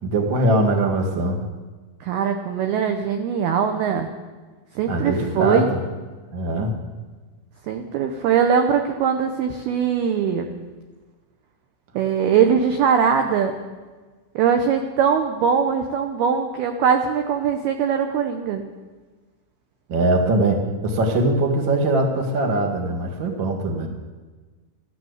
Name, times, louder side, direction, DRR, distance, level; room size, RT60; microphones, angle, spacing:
voice 1, 0.0-1.4 4.9-5.8 6.3-6.7 19.9-23.9, right 1 dB, 70° right, 2 dB, 1.1 m, -21 dB
voice 2, 2.0-4.1 4.8-5.7 7.7-10.5 11.9-13.6 14.4-18.6, right 7 dB, 90° right, 6 dB, 2.2 m, -21 dB
15.0 x 12.0 x 8.0 m, 1.3 s
omnidirectional pair, 5.8 m